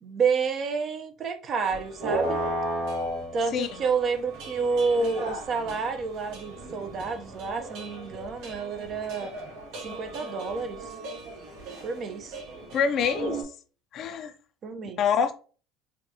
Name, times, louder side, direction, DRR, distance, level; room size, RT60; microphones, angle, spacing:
voice 1, 0.0-2.4 3.3-9.3 9.8-10.8 11.8-12.3 14.6-15.0, right 5 dB, 45° right, 0.8 m, -29 dB
sound 1, 1.6-13.4, right 1 dB, 75° right, 1.6 m, -35 dB
voice 2, 12.7-13.4 13.9-14.3 15.0-15.3, left 7 dB, 50° left, 0.6 m, -25 dB
5.0 x 2.4 x 2.8 m
supercardioid pair, 100°, 0 cm